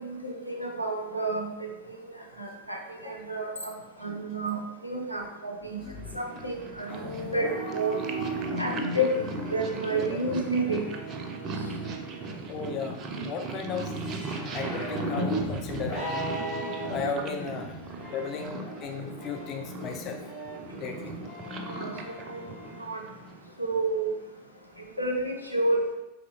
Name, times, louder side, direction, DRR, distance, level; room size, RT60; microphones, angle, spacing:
voice 1, 0.2-2.0 2.4-3.7 4.0-5.8 6.1-6.9 7.3-7.5 7.7-7.9 8.6-9.1 9.5-10.8 21.7-21.9 22.3-22.4 22.8-23.0 23.6-24.1 25.0-25.9, right 2 dB, 90° left, 0 dB, 0.5 m, -30 dB
voice 2, 5.8-6.1 7.1-7.3 12.5-13.0 13.2-13.9 14.5-16.1 16.9-17.8 18.1-20.2 20.8-21.1, left 5 dB, 35° left, 4 dB, 0.4 m, -35 dB
Purr, 5.9-23.5, right 3 dB, 30° right, 0.4 m, -38 dB
sound 1, 6.9-22.8, equal, 65° left, 1.4 m, -37 dB
3.8 x 3.0 x 2.8 m, 1.0 s
figure-of-eight pair, 90°, 0 cm